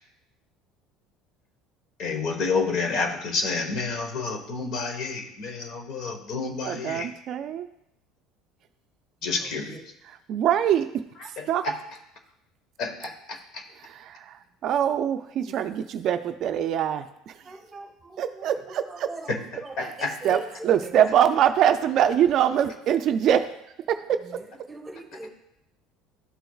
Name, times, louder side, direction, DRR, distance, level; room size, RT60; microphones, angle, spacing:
voice 1, 2.0-7.1 9.2-9.8 11.2-11.8 12.8-13.6 19.3-20.2, left 4 dB, 55° left, 5 dB, 1.2 m, -29 dB
voice 2, 6.6-7.7 10.1-11.7 13.8-17.6 18.2-19.1 20.2-23.5 23.9-24.4, right 9 dB, 50° right, 9 dB, 0.4 m, -24 dB
voice 3, 9.2-9.8 17.4-21.0 24.2-25.3, right 2 dB, 15° right, 4 dB, 1.2 m, -42 dB
13.0 x 4.5 x 2.3 m, 0.82 s
cardioid pair, 130°, 0 cm